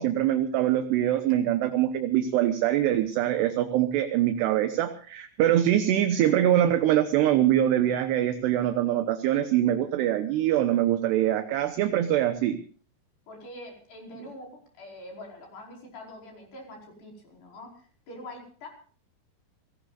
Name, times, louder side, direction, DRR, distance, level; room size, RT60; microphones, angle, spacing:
voice 1, 0.0-12.6 14.2-14.3, right 12 dB, 75° right, 8 dB, 2.9 m, -24 dB
voice 2, 13.3-18.7, left 1 dB, 60° left, 0 dB, 7.0 m, -44 dB
28.5 x 18.0 x 2.5 m, 0.43 s
omnidirectional pair, 5.5 m